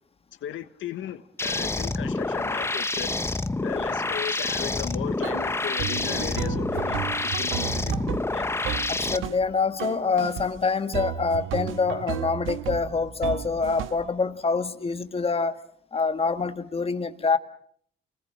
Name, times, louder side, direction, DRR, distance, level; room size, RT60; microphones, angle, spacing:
voice 1, 0.4-3.1 3.6-7.9 8.3-8.5, left 10 dB, 75° left, 1.4 m, -36 dB
sound 1, 1.4-9.2, left 2 dB, 10° left, 0.9 m, -28 dB
sound 2, 5.2-5.5 5.8-9.5 9.8-10.5 10.9-14.1, right 10 dB, 85° right, 1.5 m, -33 dB
voice 2, 8.9-15.6 15.9-17.4, left 4 dB, 30° left, 1.8 m, -26 dB
29.5 x 20.5 x 6.4 m
cardioid pair, 90°, 20 cm